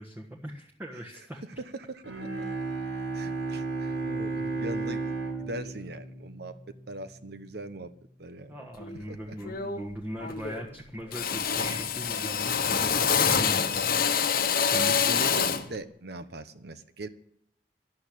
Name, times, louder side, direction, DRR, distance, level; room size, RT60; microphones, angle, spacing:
voice 1, 0.0-1.4 8.5-14.2 14.7-15.0, equal, 10° right, 0 dB, 1.4 m, -40 dB
voice 2, 1.6-2.0 3.1-7.9 8.2-8.7 9.1-9.4 14.7-17.1, right 1 dB, 65° right, 11 dB, 1.1 m, -40 dB
Bowed string instrument, 2.0-7.2, right 3 dB, 90° right, 5.6 m, -33 dB
Drill, 8.8-9.0 9.4-9.9 10.2-10.8 11.1-15.7, left 6 dB, 55° left, 1.1 m, -26 dB
13.0 x 11.5 x 8.6 m, 0.72 s
head